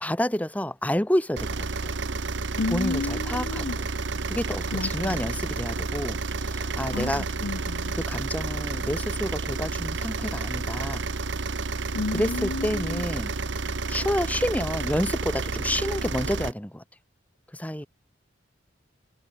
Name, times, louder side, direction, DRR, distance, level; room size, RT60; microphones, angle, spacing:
voice 1, 0.0-1.7 2.7-3.7 4.2-7.3 8.0-11.0 12.1-13.3 13.9-16.8 17.5-17.9, left 1 dB, 10° left, 1.9 m, -29 dB
sound 1, 1.4-16.5, right 3 dB, 65° right, 1.1 m, -30 dB
voice 2, 2.6-3.8 4.7-5.2 6.9-7.9 11.9-13.0, left 3 dB, 75° left, 0.7 m, -32 dB
head